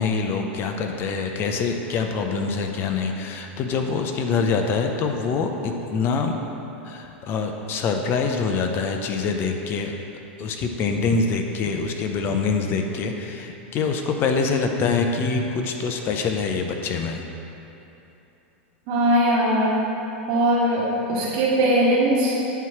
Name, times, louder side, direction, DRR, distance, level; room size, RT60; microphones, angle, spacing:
voice 1, 0.0-6.3 6.8-10.0 10.4-17.2, left 4 dB, 40° left, 4 dB, 0.6 m, -25 dB
voice 2, 18.9-19.7 20.3-20.8 21.1-22.3, right 1 dB, 55° right, -6 dB, 1.6 m, -20 dB
9.1 x 3.1 x 5.8 m, 3.0 s
hypercardioid pair, 115°, 6 cm